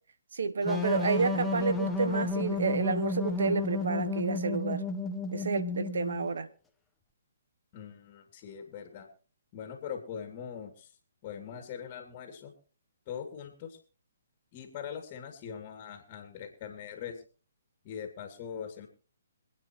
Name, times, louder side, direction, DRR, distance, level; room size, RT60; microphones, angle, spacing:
voice 1, 0.3-4.8 5.3-6.5, right 5 dB, 70° right, 1.4 m, -30 dB
sound 1, 0.6-6.3, left 3 dB, 10° left, 1.3 m, -32 dB
voice 2, 7.7-9.1 9.5-11.0 11.2-12.5 13.1-13.8 14.5-17.2 17.8-18.9, left 8 dB, 35° left, 2.7 m, -42 dB
27.0 x 9.2 x 3.1 m
hypercardioid pair, 140°, 0 cm